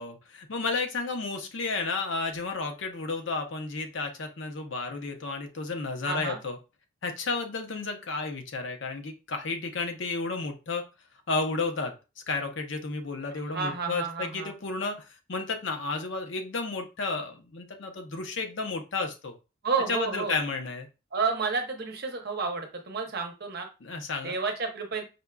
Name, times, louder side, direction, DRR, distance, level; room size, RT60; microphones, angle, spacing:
voice 1, 0.0-6.6 7.0-10.8 11.3-11.9 12.3-15.0 15.3-19.3 19.9-20.9 23.8-24.4, left 3 dB, 65° left, 5 dB, 0.7 m, -32 dB
voice 2, 6.0-6.4 13.5-14.5 19.6-20.4 21.1-23.7 24.2-25.0, right 4 dB, 50° right, 4 dB, 0.7 m, -30 dB
5.1 x 2.4 x 2.3 m, 0.29 s
head